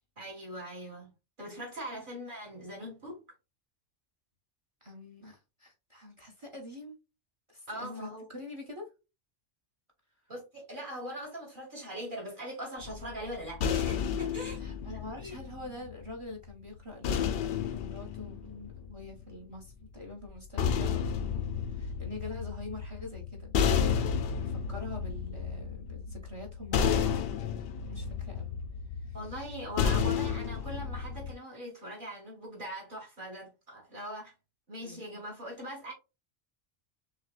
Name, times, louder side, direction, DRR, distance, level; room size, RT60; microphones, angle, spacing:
voice 1, 0.2-1.1 1.4-3.2 7.7-8.3 10.3-14.7 15.2-15.4 29.1-34.3 34.7-35.9, equal, 45° right, 2.2 m, -41 dB
voice 2, 4.8-7.0 7.5-8.9 14.6-23.8 24.1-27.1 27.9-28.6 29.0-29.2 34.8-35.0, left 2 dB, 25° right, 1.2 m, -45 dB
sound 1, 12.8-16.1 17.0-19.3 20.3-31.3, left 7 dB, 65° left, 0.7 m, -32 dB
6.3 x 2.4 x 2.4 m
omnidirectional pair, 1.2 m